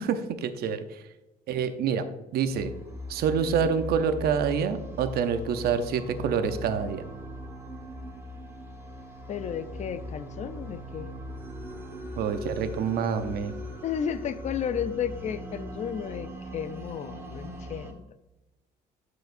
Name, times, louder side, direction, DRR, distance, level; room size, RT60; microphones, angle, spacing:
voice 1, 0.0-1.0 1.5-2.0 2.3-2.7 3.1-7.0 12.2-13.5, right 7 dB, 65° right, 10 dB, 0.7 m, -27 dB
sound 1, 2.5-17.9, equal, 15° right, 1.3 m, -40 dB
voice 2, 9.3-11.2 13.8-18.1, left 8 dB, 45° left, 13 dB, 0.5 m, -33 dB
12.0 x 4.8 x 2.6 m, 1.0 s
cardioid pair, 110°, 17 cm